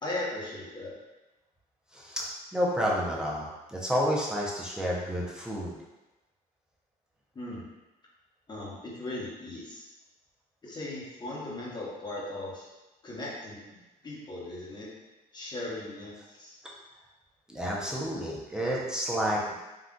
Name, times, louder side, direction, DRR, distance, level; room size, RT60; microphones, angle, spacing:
voice 1, 0.0-1.0 7.3-7.6 8.5-9.9 10.6-12.6 13.0-13.8 14.0-14.9 15.3-16.6, left 2 dB, 25° left, -5 dB, 0.9 m, -38 dB
voice 2, 1.9-5.8 17.5-19.5, equal, 5° right, -4 dB, 0.5 m, -30 dB
3.7 x 2.4 x 2.2 m, 1.1 s
cardioid pair, 110°, 17 cm